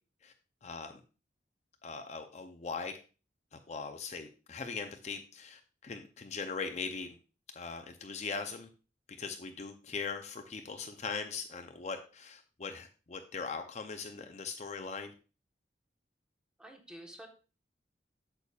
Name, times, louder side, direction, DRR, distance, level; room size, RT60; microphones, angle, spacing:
voice 1, 0.6-1.0 1.8-2.9 3.7-7.1 7.6-8.7 9.2-15.1, left 5 dB, 40° left, 5 dB, 0.5 m, -40 dB
voice 2, 16.6-17.3, right 1 dB, 5° right, 2 dB, 1.1 m, -49 dB
8.2 x 6.8 x 2.3 m, 0.34 s
head